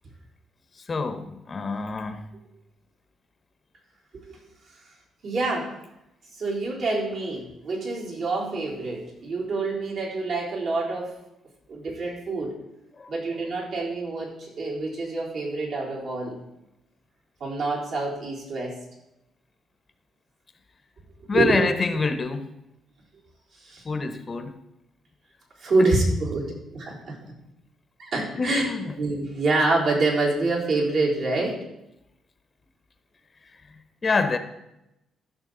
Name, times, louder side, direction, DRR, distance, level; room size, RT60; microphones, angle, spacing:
voice 1, 0.8-2.2 13.0-13.1 21.3-22.5 23.8-24.5 28.4-28.9 33.4-34.4, left 4 dB, 35° left, 9 dB, 0.9 m, -27 dB
voice 2, 5.2-5.7 6.3-11.1 11.7-12.5 13.1-16.4 17.4-18.8 21.3-21.6 23.5-23.8 25.6-27.2 28.0-28.6 29.0-31.6, right 3 dB, 65° right, -4 dB, 3.8 m, -26 dB
14.0 x 6.3 x 3.9 m, 0.87 s
cardioid pair, 90°, 0 cm